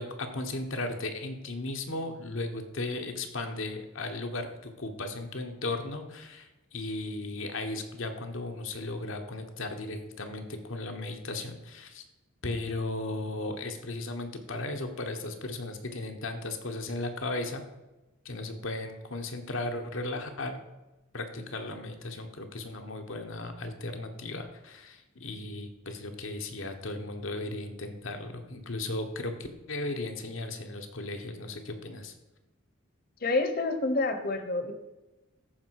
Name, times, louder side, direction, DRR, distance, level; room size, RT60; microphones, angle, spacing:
voice 1, 0.0-12.0 12.4-17.6 18.2-20.6 21.1-32.1, left 2 dB, 70° left, 5 dB, 1.3 m, -36 dB
voice 2, 33.2-34.7, left 2 dB, 45° left, 8 dB, 1.1 m, -28 dB
13.5 x 5.2 x 4.8 m, 1.1 s
head